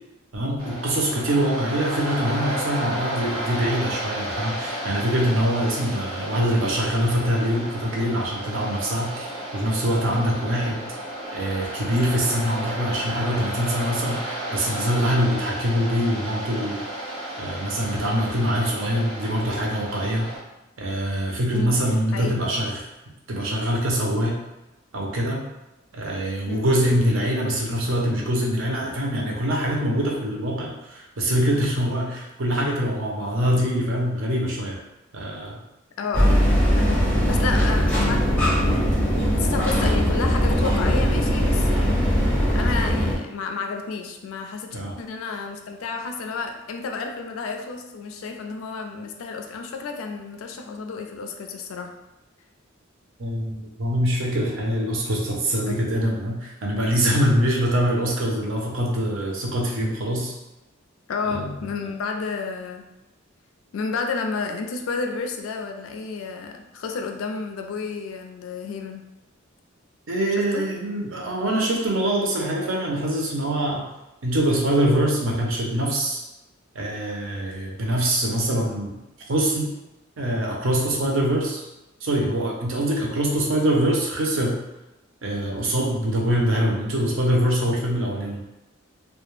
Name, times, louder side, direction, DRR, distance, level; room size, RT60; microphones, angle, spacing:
voice 1, 0.3-9.3 9.5-10.8 11.3-16.8 17.4-20.3 20.8-22.9 23.3-24.4 24.9-25.4 25.9-34.8 35.1-35.6 44.7-44.9 53.2-60.3 61.3-61.5 70.1-73.8 74.2-76.2 76.7-79.0 79.3-79.7 80.2-81.6 82.0-84.6 85.2-88.5, equal, 70° right, -1 dB, 0.6 m, -24 dB
Waves surf, 0.6-20.4, right 1 dB, 85° right, 1.0 m, -33 dB
voice 2, 36.0-36.4 36.7-42.2 42.5-51.9 55.7-55.8 61.1-62.9 63.7-69.0 70.4-70.6, left 4 dB, 80° left, 4 dB, 0.3 m, -31 dB
sound 1, 36.1-43.2, equal, 5° left, 0.6 m, -20 dB
2.2 x 2.0 x 3.0 m, 0.97 s
head